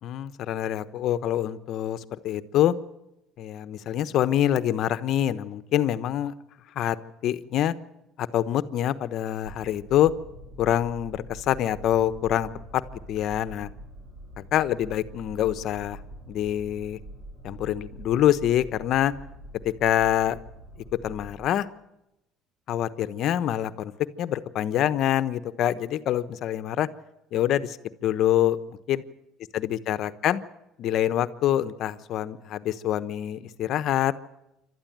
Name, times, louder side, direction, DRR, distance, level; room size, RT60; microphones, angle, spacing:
voice 1, 0.0-2.7 3.4-6.3 6.7-7.0 7.2-7.7 8.2-10.1 10.6-12.8 13.1-13.7 14.5-16.0 16.3-17.0 17.4-19.1 19.8-20.4 21.0-21.7 22.7-23.9 24.2-26.9 27.3-29.0 29.5-30.4 30.8-34.1, left 11 dB, 60° left, 13 dB, 1.1 m, -25 dB
sound 1, 9.4-21.5, right 1 dB, 65° right, 7.8 m, -45 dB
27.5 x 13.0 x 8.9 m, 0.91 s
supercardioid pair, 90°, 0 cm